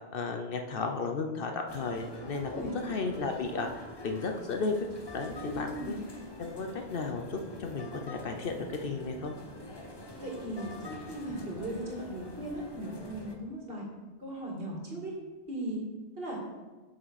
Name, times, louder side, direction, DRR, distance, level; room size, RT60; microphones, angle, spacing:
voice 1, 0.1-2.5 2.8-4.9 5.1-6.0 6.4-9.3, left 4 dB, 60° left, 5 dB, 0.8 m, -34 dB
sound 1, 1.7-13.4, left 1 dB, 25° left, 0.8 m, -45 dB
voice 2, 5.4-5.9 10.2-13.8 14.2-15.1 15.5-15.8 16.2-16.4, right 1 dB, 55° right, -2 dB, 2.2 m, -38 dB
9.4 x 6.4 x 4.1 m, 1.2 s
omnidirectional pair, 1.1 m